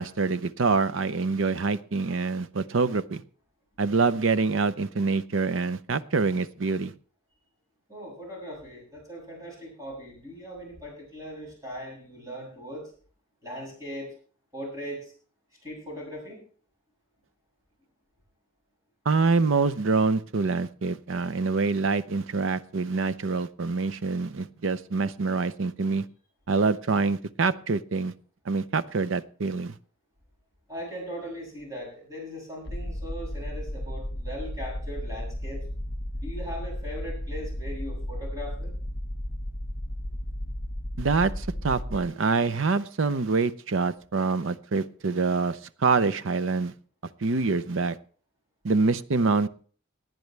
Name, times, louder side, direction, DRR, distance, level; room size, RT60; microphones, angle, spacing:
voice 1, 0.0-3.2 3.8-6.9 19.1-26.0 26.5-28.1 28.5-29.7 41.0-46.7 47.2-48.0 48.6-49.5, right 4 dB, 75° right, 14 dB, 0.6 m, -25 dB
voice 2, 7.9-12.9 13.4-14.1 14.5-15.1 15.6-16.4 30.7-35.6 36.1-38.7, equal, 15° right, -3 dB, 7.5 m, -39 dB
sound 1, 32.7-42.0, equal, 50° left, 1.6 m, -34 dB
19.0 x 10.5 x 3.3 m, 0.43 s
head